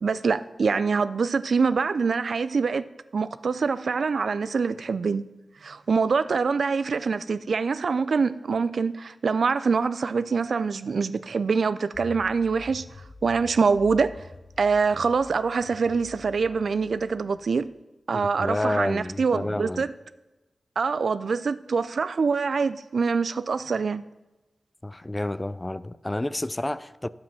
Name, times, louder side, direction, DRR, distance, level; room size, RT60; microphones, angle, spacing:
voice 1, 0.0-2.8 3.1-5.2 5.6-12.8 13.2-14.1 14.6-17.7 18.1-19.9 20.8-24.0, right 5 dB, 75° right, 0.4 m, -24 dB
sound 1, 11.9-17.8, left 3 dB, 60° left, 0.7 m, -47 dB
voice 2, 18.1-19.9 24.8-27.1, left 1 dB, 25° left, 0.4 m, -30 dB
9.4 x 7.7 x 5.8 m
cardioid pair, 45°, 0 cm